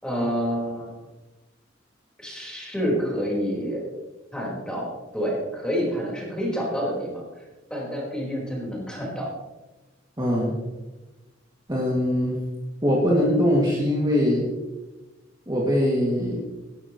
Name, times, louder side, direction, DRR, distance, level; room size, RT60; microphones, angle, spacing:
voice 1, 0.0-1.0 2.2-3.8 4.3-7.2 7.7-9.3, equal, 5° left, -4 dB, 4.6 m, -28 dB
voice 2, 10.2-10.5 11.7-12.4 12.8-14.5 15.5-16.4, equal, 20° right, -5 dB, 2.3 m, -22 dB
18.0 x 12.0 x 3.1 m, 1.1 s
head